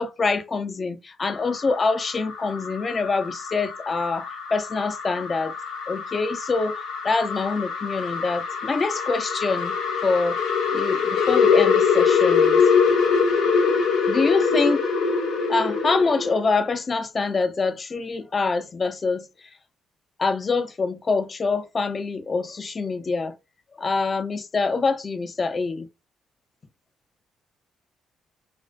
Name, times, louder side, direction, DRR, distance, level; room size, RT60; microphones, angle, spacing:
voice 1, 0.0-5.5 5.9-6.7 7.0-9.7 10.0-10.4 10.7-12.6 14.1-14.8 15.5-19.3 20.2-23.3 23.8-25.9, left 4 dB, 35° left, 0.5 m, -25 dB
sound 1, 1.3-16.4, left 5 dB, 80° left, 0.7 m, -23 dB
2.4 x 2.3 x 2.2 m
cardioid pair, 90°, 0 cm